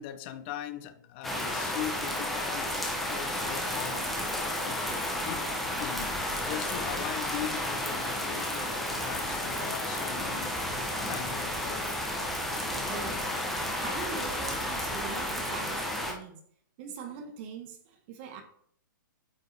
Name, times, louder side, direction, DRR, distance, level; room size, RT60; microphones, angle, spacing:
voice 1, 0.0-2.7 3.1-4.1 4.6-10.5 11.0-11.9, left 11 dB, 30° left, 0.6 m, -40 dB
sound 1, 1.2-16.1, left 1 dB, ahead, 0.8 m, -32 dB
voice 2, 4.8-5.3 12.8-13.3 13.6-16.4 16.8-18.4, right 7 dB, 35° right, 1.1 m, -42 dB
8.4 x 4.5 x 3.4 m
hypercardioid pair, 155°, 11 cm